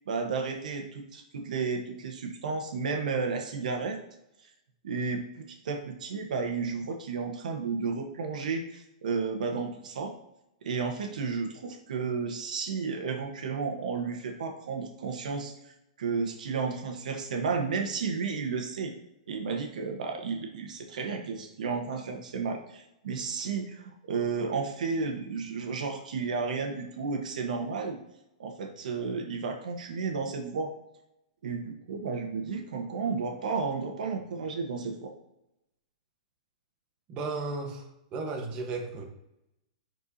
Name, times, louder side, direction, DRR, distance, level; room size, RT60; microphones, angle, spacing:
voice 1, 0.1-4.0 4.8-5.2 5.5-10.1 10.6-15.5 16.0-18.9 19.3-28.0 28.4-30.7 31.4-35.1, right 5 dB, 75° right, 3 dB, 1.2 m, -32 dB
voice 2, 37.1-39.0, right 3 dB, 30° right, 2 dB, 1.2 m, -35 dB
10.5 x 4.4 x 2.8 m, 0.87 s
hypercardioid pair, 150°, 4 cm